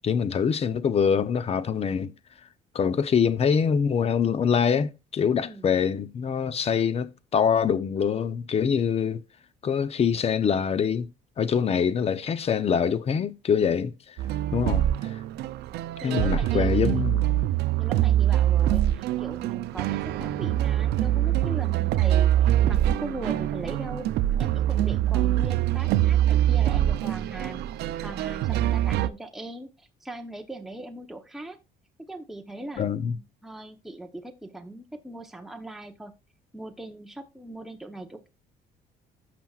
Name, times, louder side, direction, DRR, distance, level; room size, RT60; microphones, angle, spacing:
voice 1, 0.0-2.1 2.7-9.2 9.6-11.1 11.4-14.1 14.5-14.8 16.0-17.2 32.8-33.2, left 7 dB, 35° left, 0.7 m, -24 dB
sound 1, 14.2-29.1, right 12 dB, 80° right, 0.5 m, -24 dB
voice 2, 16.0-17.0 17.8-24.1 24.4-27.7 28.0-31.6 32.0-36.1 36.5-38.3, right 1 dB, ahead, 0.9 m, -40 dB
15.0 x 6.0 x 2.4 m
cardioid pair, 110°, 17 cm